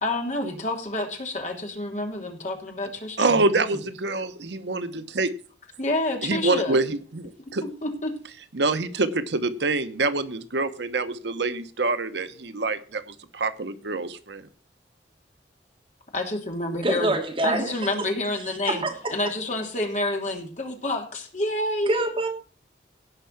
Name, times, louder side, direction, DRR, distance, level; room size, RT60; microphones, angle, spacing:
voice 1, 0.0-3.8 5.8-6.8 7.6-8.1 16.1-17.1 17.4-18.8 19.1-22.0, left 2 dB, 40° left, 2 dB, 2.9 m, -28 dB
voice 2, 3.2-5.3 6.2-6.8 7.1-7.2 7.5-7.6 8.5-13.0 13.3-14.4, right 3 dB, 75° right, 11 dB, 0.9 m, -25 dB
voice 3, 16.8-18.1 18.7-19.1 21.9-22.3, right 2 dB, 30° right, 1 dB, 2.8 m, -26 dB
17.0 x 5.7 x 5.7 m, 0.39 s
head